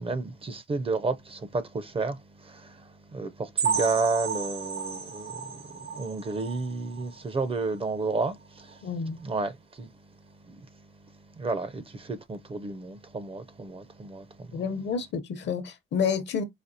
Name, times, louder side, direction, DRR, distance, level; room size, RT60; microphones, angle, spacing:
voice 1, 0.0-8.8 9.2-9.9 10.5-10.6 11.4-14.6, right 3 dB, 30° right, 0.5 m, -32 dB
sound 1, 3.6-7.2 7.6-7.7 8.1-8.2 8.7-8.8, right 6 dB, 80° right, 1.0 m, -32 dB
voice 2, 8.8-9.2 14.5-16.4, left 6 dB, 60° left, 0.8 m, -29 dB
4.9 x 2.4 x 2.7 m
cardioid pair, 90°, 20 cm